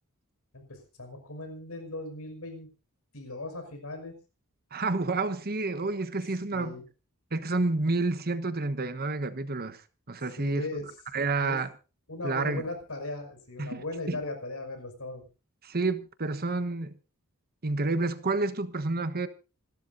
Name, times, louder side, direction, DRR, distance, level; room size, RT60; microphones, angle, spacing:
voice 1, 0.5-2.7 3.1-4.2 6.5-6.8 10.4-10.9 11.4-11.6 12.1-15.2, left 2 dB, 70° left, 5.8 m, -38 dB
voice 2, 4.7-6.7 7.3-9.8 10.1-10.7 11.1-11.7 12.2-12.6 13.6-14.2 15.6-17.0 17.6-19.3, right 3 dB, 45° right, 1.2 m, -29 dB
27.0 x 13.0 x 2.7 m
head